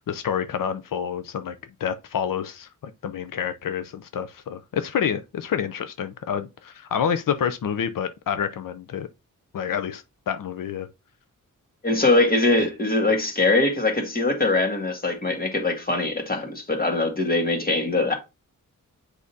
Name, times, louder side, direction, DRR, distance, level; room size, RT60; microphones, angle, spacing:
voice 1, 0.1-9.1 9.5-10.9, left 8 dB, 85° left, 0.6 m, -28 dB
voice 2, 11.8-18.1, left 2 dB, 30° left, 1.7 m, -22 dB
8.4 x 5.0 x 2.7 m
wide cardioid pair, 140°, 32 cm